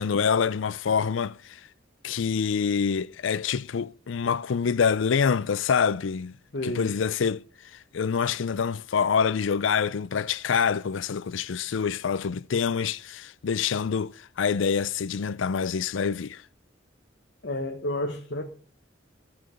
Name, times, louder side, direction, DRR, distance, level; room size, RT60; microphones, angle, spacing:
voice 1, 0.0-1.6 2.0-6.3 6.6-7.4 7.9-16.4, left 6 dB, 85° left, 0.5 m, -26 dB
voice 2, 6.5-6.9 17.4-18.4, left 1 dB, 65° left, 1.3 m, -30 dB
14.5 x 7.0 x 5.2 m
head